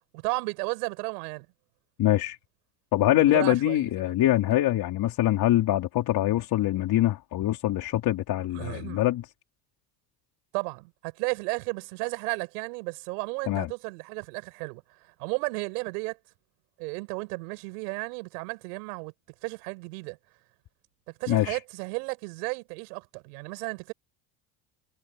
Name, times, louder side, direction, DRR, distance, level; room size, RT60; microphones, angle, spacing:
voice 1, 0.1-1.5 3.1-4.1 8.5-9.0 10.5-14.8 15.2-16.2 16.8-19.1 19.4-20.2 21.2-23.9, right 29 dB, 85° right, 6.3 m, -33 dB
voice 2, 2.0-2.4 2.9-9.2 13.5-13.7 21.3-21.6, left 14 dB, 55° left, 3.9 m, -24 dB
supercardioid pair, 105°, 44 cm